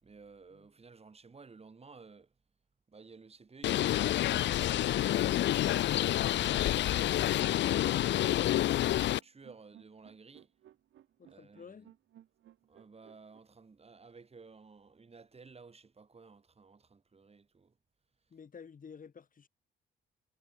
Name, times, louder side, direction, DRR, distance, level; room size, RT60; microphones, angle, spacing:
voice 1, 0.0-2.3 2.9-7.1 8.0-10.5 11.2-11.8 12.7-17.8, right 4 dB, 30° right, 5.8 m, -55 dB
Bird, 3.6-9.2, left 13 dB, 65° left, 0.5 m, -28 dB
sound 1, 7.4-13.4, right 12 dB, 75° right, 2.7 m, -60 dB
voice 2, 11.2-11.9 18.3-19.5, left 6 dB, 45° left, 5.2 m, -51 dB
cardioid pair, 90°, 20 cm